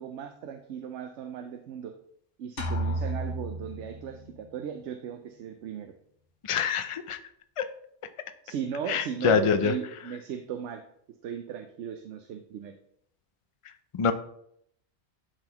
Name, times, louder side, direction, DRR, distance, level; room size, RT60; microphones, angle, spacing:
voice 1, 0.0-1.9 2.4-5.9 8.4-10.8 11.2-12.7, right 8 dB, 90° right, 6 dB, 0.9 m, -37 dB
sound 1, 2.6-4.4, right 1 dB, 90° left, 1.3 m, -32 dB
voice 2, 6.4-7.2 7.6-7.7 8.9-9.7 13.9-14.1, left 6 dB, 55° left, 9 dB, 0.3 m, -25 dB
11.0 x 3.9 x 2.9 m, 0.70 s
omnidirectional pair, 1.2 m